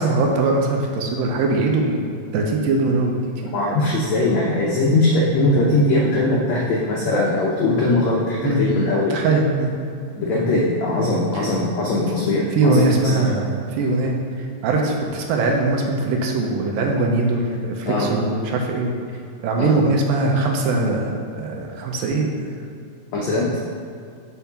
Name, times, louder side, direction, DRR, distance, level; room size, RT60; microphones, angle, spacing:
voice 1, 0.0-3.2 8.4-8.6 9.1-9.7 11.3-11.5 12.5-14.2 14.6-18.9 19.4-22.7, right 3 dB, 75° right, 0 dB, 2.4 m, -21 dB
voice 2, 3.5-9.1 10.2-12.8 13.1-13.3 17.9-18.1 19.6-19.7 23.1-23.5, left 2 dB, 80° left, -3 dB, 1.6 m, -20 dB
7.0 x 4.6 x 5.8 m, 2.4 s
omnidirectional pair, 4.3 m